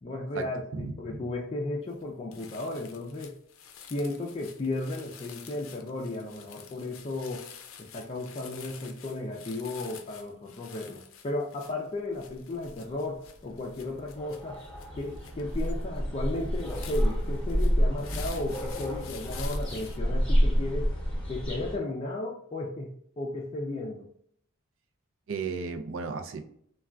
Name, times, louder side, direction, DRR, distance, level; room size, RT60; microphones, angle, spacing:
voice 1, 0.0-3.4 3.9-7.5 7.8-14.6 15.0-20.9 21.3-24.1, left 2 dB, 30° left, -1 dB, 0.4 m, -35 dB
voice 2, 0.7-1.3 25.3-26.4, right 5 dB, 70° right, 6 dB, 0.4 m, -34 dB
sound 1, 1.9-2.0 2.3-20.0, left 8 dB, 90° left, 0.5 m, -49 dB
sound 2, 12.7-12.8 13.2-21.8, equal, 5° left, 0.8 m, -29 dB
3.6 x 2.2 x 2.2 m, 0.66 s
head